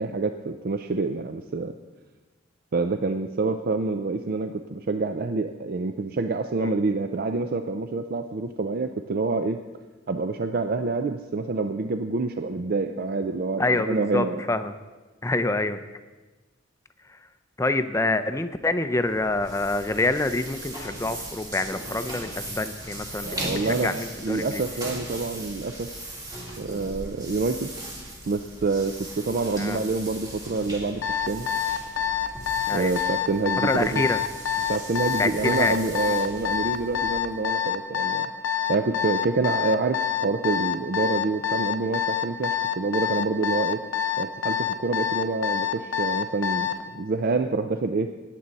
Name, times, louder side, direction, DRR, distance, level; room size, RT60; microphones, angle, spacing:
voice 1, 0.0-1.7 2.7-9.6 10.1-14.4 23.2-25.9 26.6-27.7 28.3-31.0 31.3-31.5 32.7-34.0 34.7-38.3 38.7-43.8 44.2-48.1, right 3 dB, 50° right, 7 dB, 0.4 m, -27 dB
voice 2, 13.6-14.7 15.2-15.8 17.1-17.2 17.6-24.6 29.6-29.8 32.7-32.9 33.6-34.2 35.2-35.8 36.1-36.2, left 2 dB, 15° left, 10 dB, 0.5 m, -26 dB
tafel putzen, 19.0-37.4, right 1 dB, 20° right, 2.5 m, -39 dB
Alarm, 31.0-46.8, left 9 dB, 70° left, 0.8 m, -26 dB
18.5 x 7.6 x 4.1 m, 1.3 s
head